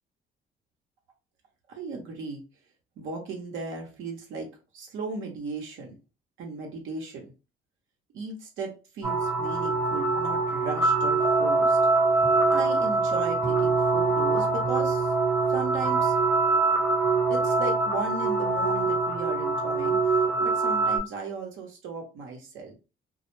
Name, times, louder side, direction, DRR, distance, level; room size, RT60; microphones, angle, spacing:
voice 1, 1.7-2.4 3.0-4.5 4.7-5.9 6.4-7.3 8.1-11.8 12.5-15.1 15.5-16.2 17.3-20.0 20.4-22.7, right 4 dB, 85° right, 1 dB, 0.7 m, -36 dB
sound 1, 9.0-21.0, right 3 dB, 20° right, 0.7 m, -24 dB
2.0 x 2.0 x 3.0 m, 0.31 s
cardioid pair, 90°, 20 cm